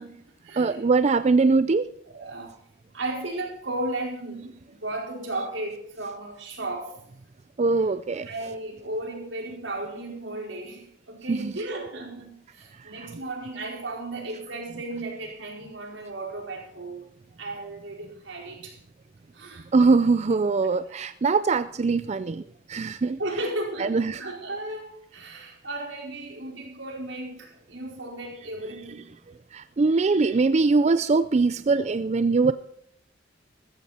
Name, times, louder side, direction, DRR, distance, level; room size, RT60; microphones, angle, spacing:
voice 1, 0.0-0.8 2.1-2.6 2.9-7.0 8.3-17.1 17.4-18.8 19.3-19.7 23.2-29.1, right 2 dB, 85° right, 0 dB, 4.7 m, -35 dB
voice 2, 0.6-1.9 7.6-8.3 11.3-11.5 19.7-22.4 22.7-23.2 23.8-24.2 29.5-32.5, right 4 dB, 35° right, 13 dB, 0.4 m, -22 dB
14.5 x 14.0 x 4.3 m, 0.69 s
head